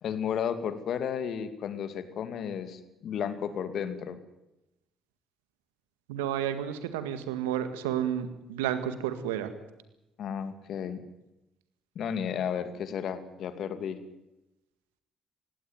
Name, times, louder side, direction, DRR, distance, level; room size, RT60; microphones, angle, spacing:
voice 1, 0.0-4.2 10.2-11.0 11.9-14.0, left 8 dB, 65° left, 11 dB, 2.5 m, -33 dB
voice 2, 6.1-9.5, right 10 dB, 90° right, 11 dB, 1.8 m, -31 dB
19.0 x 17.0 x 9.5 m, 0.94 s
hypercardioid pair, 55°, 0 cm